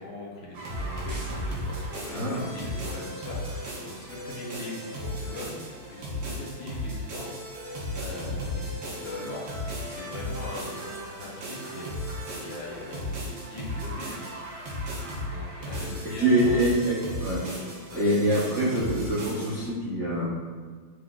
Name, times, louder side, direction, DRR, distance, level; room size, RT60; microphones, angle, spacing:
voice 1, 0.0-5.5 5.8-11.9 12.2-14.3 14.8-16.6 17.9-18.2, left 2 dB, 70° left, -4 dB, 1.6 m, -41 dB
sound 1, 0.5-19.7, equal, 85° right, 2.0 m, -35 dB
voice 2, 2.1-2.5 16.0-17.5 17.9-20.3, right 1 dB, 60° right, -9 dB, 0.7 m, -25 dB
5.8 x 3.9 x 2.3 m, 1.5 s
omnidirectional pair, 2.4 m